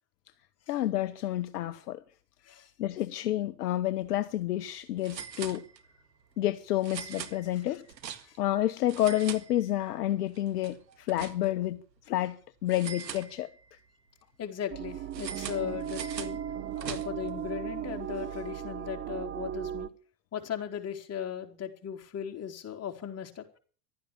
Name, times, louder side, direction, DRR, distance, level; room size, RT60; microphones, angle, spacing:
voice 1, 0.7-2.0 2.8-5.7 6.4-7.8 8.4-11.8 12.1-13.5 16.8-17.0, left 14 dB, 65° left, 1.1 m, -29 dB
sound 1, 3.9-4.0 4.3-4.4 5.0-6.1 6.8-8.5 8.8-10.0 10.3-11.7 12.7-13.8 15.1-17.4, right 8 dB, 80° right, 2.0 m, -42 dB
voice 2, 14.4-16.4 16.9-19.9 20.3-23.6, left 9 dB, 30° left, 3.9 m, -37 dB
sound 2, 14.7-19.9, right 10 dB, 25° right, 1.0 m, -37 dB
15.5 x 12.5 x 7.4 m
hypercardioid pair, 90°, 50 cm